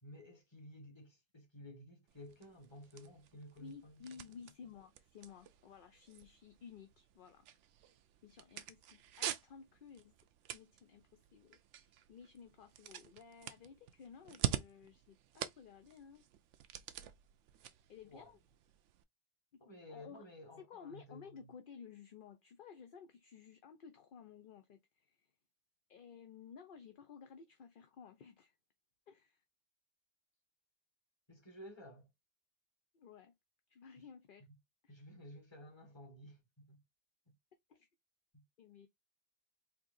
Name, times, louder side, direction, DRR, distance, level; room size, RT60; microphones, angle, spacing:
voice 1, 0.0-4.2 18.0-18.3 19.6-21.5 31.3-32.1 34.0-34.1 34.9-36.8 37.3-37.4 38.3-38.4, left 1 dB, 25° left, 1.5 m, -54 dB
sound 1, 2.1-19.0, right 11 dB, 90° right, 0.9 m, -47 dB
voice 2, 3.6-7.5 8.2-10.1 10.5-16.2 17.9-18.4 19.5-19.6 19.9-20.2 20.6-25.3 25.9-28.6 29.1-29.4 32.9-33.3 33.7-34.5 34.8-34.9 37.7-37.9 38.6-38.9, left 6 dB, 55° left, 0.7 m, -55 dB
4.4 x 2.9 x 2.5 m
omnidirectional pair, 1.2 m